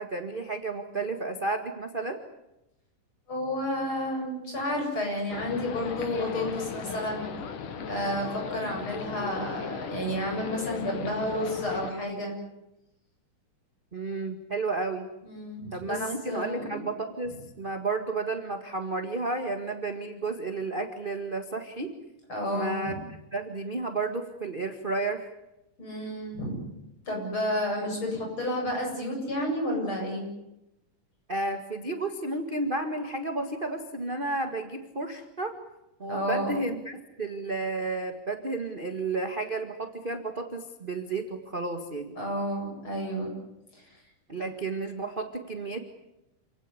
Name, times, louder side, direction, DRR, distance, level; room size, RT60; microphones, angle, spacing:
voice 1, 0.0-2.2 13.9-15.1 15.7-22.0 22.5-25.3 31.3-35.6 36.0-42.2 44.3-45.8, right 3 dB, 25° right, 5 dB, 1.3 m, -32 dB
voice 2, 3.3-7.2 7.9-12.4 15.2-16.0 16.3-16.8 22.3-22.9 25.8-26.6 27.1-30.2 36.1-36.5 42.2-43.3 43.7-43.8, left 1 dB, 40° left, 1 dB, 8.8 m, -31 dB
sound 1, 5.3-11.9, left 7 dB, 85° left, 3.4 m, -37 dB
28.5 x 17.5 x 9.7 m, 0.90 s
omnidirectional pair, 3.6 m